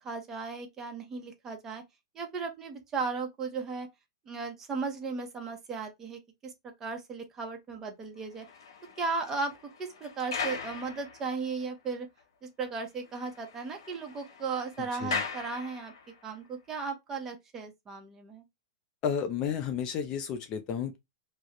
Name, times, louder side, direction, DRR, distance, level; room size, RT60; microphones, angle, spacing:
voice 1, 0.0-1.8 2.1-3.9 4.3-6.5 6.8-8.5 9.0-9.5 9.8-12.1 12.4-15.9 16.2-18.4, right 4 dB, 20° right, 0.6 m, -36 dB
sound 1, 8.2-11.7 12.2-12.3 12.6-12.7 13.0-16.3, left 5 dB, 80° left, 0.7 m, -40 dB
voice 2, 14.8-15.2 19.0-21.0, left 7 dB, 30° left, 0.4 m, -32 dB
2.3 x 2.0 x 2.8 m
hypercardioid pair, 150°, 2 cm